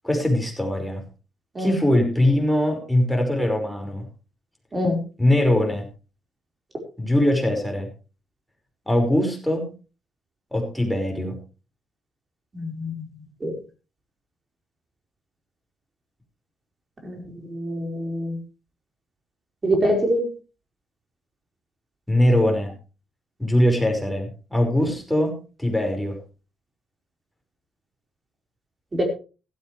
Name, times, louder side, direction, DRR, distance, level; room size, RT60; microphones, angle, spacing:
voice 1, 0.0-1.0 1.6-4.1 5.2-5.9 7.0-7.9 8.9-9.7 10.5-11.4 22.1-22.7 23.4-26.2, left 1 dB, 5° left, 2 dB, 5.3 m, -21 dB
voice 2, 12.5-13.1 13.4-13.5 17.0-18.4 19.6-20.3 28.9-29.0, equal, 25° right, 2 dB, 4.9 m, -25 dB
15.5 x 14.0 x 3.3 m, 0.34 s
cardioid pair, 120°, 0 cm